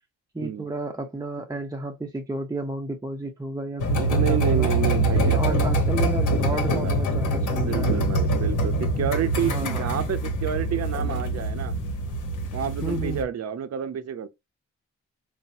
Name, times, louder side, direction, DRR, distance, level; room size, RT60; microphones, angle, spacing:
voice 1, 0.3-4.7 5.1-8.0 9.4-9.8 12.8-13.3, right 2 dB, 10° right, 0.6 m, -32 dB
sound 1, 3.8-13.2, right 1 dB, 80° left, 1.0 m, -24 dB
voice 2, 3.9-5.7 6.7-7.1 7.6-11.7 12.5-14.3, right 9 dB, 55° right, 0.6 m, -30 dB
3.9 x 2.1 x 2.6 m
cardioid pair, 70°, 31 cm